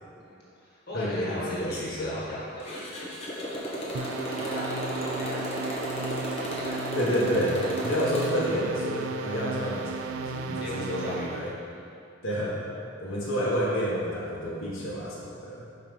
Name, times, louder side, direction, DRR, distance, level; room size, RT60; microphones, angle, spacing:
voice 1, 0.2-3.6 4.3-5.9 6.6-7.0 10.6-11.8 13.1-13.3, left 1 dB, 50° left, -8 dB, 1.6 m, -39 dB
voice 2, 0.9-2.1 6.9-11.5 12.2-12.6 13.0-15.6, equal, 85° left, -7 dB, 1.5 m, -29 dB
Motorcycle, 2.6-8.5, equal, 30° left, 1.0 m, -34 dB
sound 1, 3.9-11.5, right 4 dB, 75° right, 0.5 m, -35 dB
5.6 x 4.9 x 5.4 m, 2.6 s
head